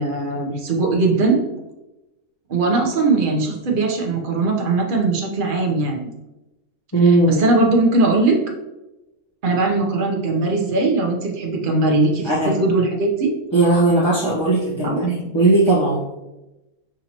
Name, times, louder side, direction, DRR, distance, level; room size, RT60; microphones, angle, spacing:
voice 1, 0.0-1.4 2.5-6.0 7.0-8.3 9.4-13.3 14.8-15.0, right 3 dB, 45° right, 0 dB, 0.8 m, -20 dB
voice 2, 6.9-7.4 12.2-12.6 13.5-16.0, right 2 dB, 20° left, -10 dB, 0.8 m, -17 dB
6.1 x 2.8 x 2.9 m, 1.0 s
omnidirectional pair, 1.6 m